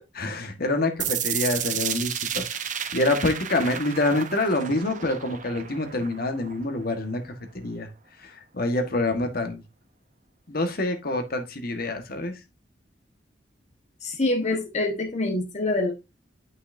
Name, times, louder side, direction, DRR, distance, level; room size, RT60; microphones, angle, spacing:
voice 1, 0.1-2.7 2.9-7.9 8.2-9.6 10.5-12.4, left 2 dB, 55° left, 1.5 m, -26 dB
sound 1, 1.0-7.0, right 9 dB, 45° right, 0.8 m, -32 dB
voice 2, 14.0-15.9, left 2 dB, 40° left, 1.3 m, -25 dB
11.0 x 5.7 x 2.7 m
head